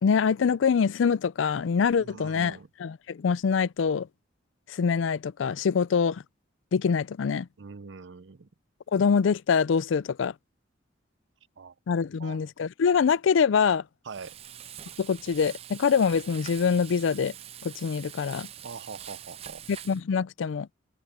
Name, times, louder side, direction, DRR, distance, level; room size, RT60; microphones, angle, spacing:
voice 1, 0.0-4.1 4.7-6.2 6.7-7.5 8.9-10.3 11.9-13.8 15.0-17.3 17.6-18.5 19.9-20.7, left 6 dB, 85° left, 0.4 m, -24 dB
voice 2, 2.0-2.7 7.6-8.5 11.6-11.7 12.2-12.4 14.0-14.4 18.6-19.6, right 4 dB, 75° right, 0.6 m, -42 dB
Frying (food), 14.1-20.0, right 10 dB, 30° right, 0.4 m, -44 dB
head